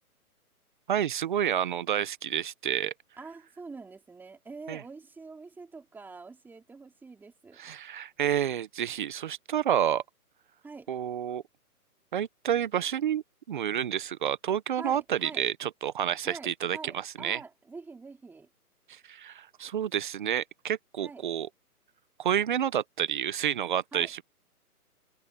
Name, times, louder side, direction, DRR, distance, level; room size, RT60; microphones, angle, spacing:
voice 1, 0.9-2.9 4.7-4.8 7.6-10.0 10.9-11.4 12.1-16.8 17.2-17.4 18.9-21.5 22.2-24.2, right 9 dB, 35° right, 0.9 m, -29 dB
voice 2, 3.2-7.6 10.6-10.9 14.8-15.5 16.2-18.5 21.0-21.3 23.9-24.1, right 4 dB, 5° right, 2.9 m, -45 dB
open air
hypercardioid pair, 160°, 46 cm